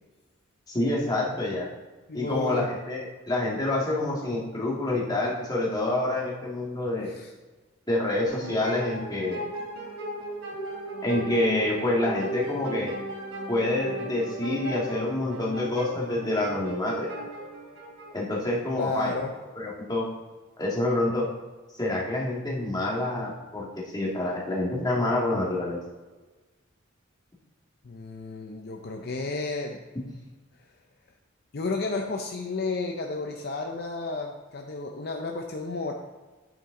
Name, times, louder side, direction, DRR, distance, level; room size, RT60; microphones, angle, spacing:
voice 1, 0.7-1.7 2.1-7.1 7.9-9.4 11.0-12.9 13.5-17.2 18.1-19.2 19.6-20.1 20.6-21.3 21.8-23.7 23.9-25.8, left 2 dB, 20° left, -3 dB, 1.8 m, -27 dB
voice 2, 2.1-2.7 7.1-7.3 18.7-19.3 27.8-29.8 31.5-35.9, left 3 dB, 50° left, 3 dB, 0.6 m, -32 dB
sound 1, 8.2-18.7, right 1 dB, 75° right, 2.8 m, -36 dB
9.1 x 6.9 x 3.7 m, 1.3 s
head